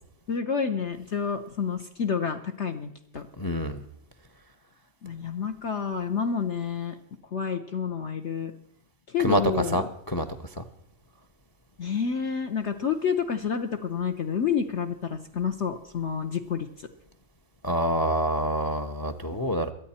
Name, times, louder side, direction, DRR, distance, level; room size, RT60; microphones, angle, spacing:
voice 1, 0.3-3.3 5.0-7.0 7.3-8.5 9.1-9.9 11.8-16.7, left 6 dB, 55° left, 6 dB, 1.0 m, -29 dB
voice 2, 3.4-3.8 9.2-9.4 9.7-10.3 10.6-10.7 17.6-19.7, equal, 25° left, 10 dB, 0.4 m, -27 dB
23.0 x 8.9 x 4.3 m, 0.75 s
omnidirectional pair, 1.6 m